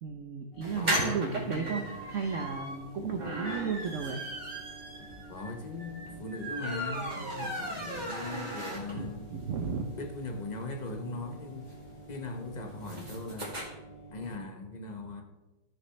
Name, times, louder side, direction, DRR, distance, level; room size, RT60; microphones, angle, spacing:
voice 1, 0.0-4.2 8.9-9.9, right 5 dB, 60° right, 4 dB, 0.8 m, -34 dB
sound 1, 0.5-14.4, right 2 dB, 20° left, 1.3 m, -50 dB
sound 2, 0.6-9.2 9.6-9.7 9.9-10.0 10.2-13.6, right 1 dB, 25° right, 2.0 m, -37 dB
voice 2, 0.7-1.9 2.9-3.4 5.3-9.3 9.9-11.7 12.1-13.5 14.1-15.2, left 2 dB, 40° left, 4 dB, 0.6 m, -39 dB
13.5 x 6.6 x 3.2 m, 1.1 s
omnidirectional pair, 2.0 m